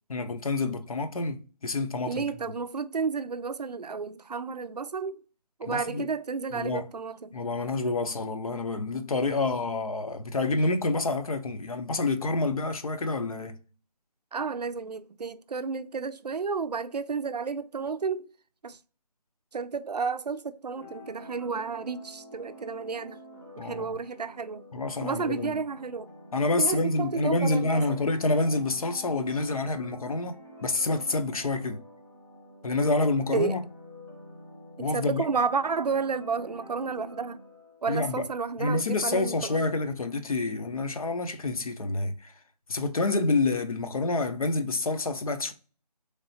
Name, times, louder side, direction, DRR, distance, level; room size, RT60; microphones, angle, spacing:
voice 1, 0.1-2.2 5.7-6.1 6.5-6.9 7.3-13.6 23.6-24.0 24.7-25.6 26.3-31.8 32.6-33.6 34.8-35.2 37.9-38.2 38.6-42.3 42.7-45.5, left 3 dB, 55° left, 0.7 m, -28 dB
voice 2, 2.1-5.2 5.6-7.3 14.3-18.3 18.6-18.8 19.5-23.2 23.6-24.6 25.0-26.1 26.6-28.0 33.3-33.5 34.9-37.4 37.8-39.7, right 5 dB, 70° right, 0.5 m, -31 dB
sound 1, 20.7-38.0, equal, 5° left, 0.8 m, -48 dB
3.6 x 3.3 x 2.7 m
figure-of-eight pair, 160°, 21 cm